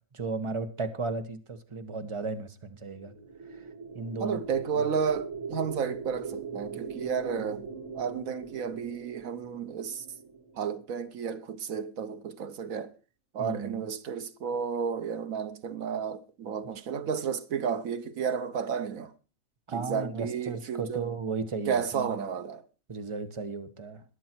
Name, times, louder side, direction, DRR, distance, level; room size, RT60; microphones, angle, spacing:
voice 1, 0.1-3.1 3.5-3.7 3.9-4.4 4.7-4.9 7.3-7.6 13.4-13.8 19.7-22.1 22.9-24.0, right 4 dB, 25° right, 1.2 m, -35 dB
sound 1, 3.0-11.1, right 5 dB, 65° right, 2.8 m, -41 dB
voice 2, 4.2-7.6 7.9-10.0 10.6-12.9 13.3-19.1 19.7-21.1 21.7-22.6, right 6 dB, 80° right, 1.5 m, -32 dB
21.0 x 7.5 x 4.5 m
omnidirectional pair, 1.4 m